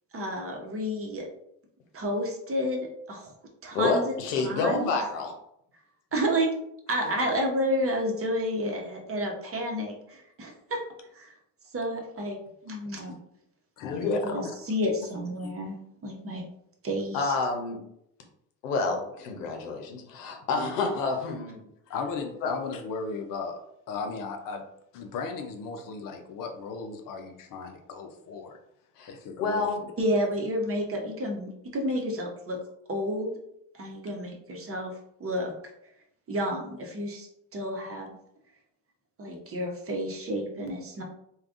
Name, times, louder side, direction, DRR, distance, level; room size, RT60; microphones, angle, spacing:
voice 1, 0.1-1.3 1.9-2.8 3.1-3.3 3.6-4.9 6.1-6.5 6.9-10.8 11.1-11.3 11.7-12.4 12.6-13.2 14.0-15.8 16.0-16.4 16.8-17.3 30.0-32.6 32.9-33.3 33.7-34.9 35.2-35.5 36.3-38.1 39.2-41.0, equal, 30° right, 1 dB, 0.9 m, -30 dB
voice 2, 3.7-5.3 13.8-14.2 17.1-17.8 18.6-21.6 22.4-22.5 29.0-29.8, left 4 dB, 85° left, 3 dB, 0.7 m, -28 dB
voice 3, 13.8-14.1 15.4-15.5 21.9-23.6 23.9-24.6 24.9-28.6 29.1-29.7, left 4 dB, 45° left, 5 dB, 0.6 m, -36 dB
3.3 x 2.3 x 2.5 m, 0.76 s
hypercardioid pair, 70°, 46 cm